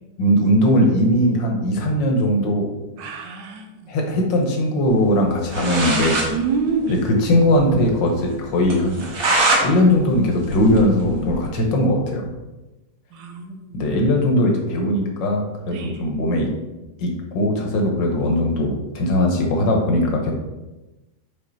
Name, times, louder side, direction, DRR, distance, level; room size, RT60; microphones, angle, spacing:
voice 1, 0.2-2.7 3.9-6.2 7.1-9.1 9.6-12.3 13.7-16.5 17.0-20.3, left 1 dB, 80° left, 1 dB, 1.8 m, -19 dB
voice 2, 3.0-3.9 6.3-7.0 13.1-13.9 15.7-16.0, right 5 dB, 90° right, 5 dB, 1.5 m, -27 dB
sound 1, 5.2-5.3 5.5-6.3 6.6-6.7 7.0-7.1 7.5-7.6 8.0-8.1 8.7-9.7 10.0-11.4, right 2 dB, 55° right, 1.5 m, -22 dB
5.7 x 4.6 x 4.0 m, 1.1 s
omnidirectional pair, 1.9 m